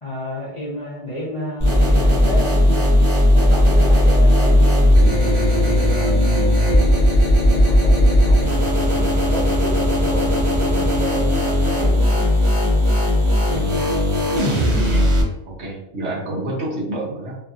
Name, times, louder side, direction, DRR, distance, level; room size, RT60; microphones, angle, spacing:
voice 1, 0.0-2.9 3.3-4.9 5.2-6.9 7.5-12.2, left 1 dB, 35° left, -9 dB, 0.6 m, -31 dB
sound 1, 1.6-15.2, left 1 dB, 30° right, 0.6 m, -16 dB
voice 2, 13.5-15.1 15.4-17.3, right 1 dB, 65° right, -4 dB, 1.1 m, -29 dB
2.8 x 2.5 x 2.4 m, 0.88 s
omnidirectional pair, 1.3 m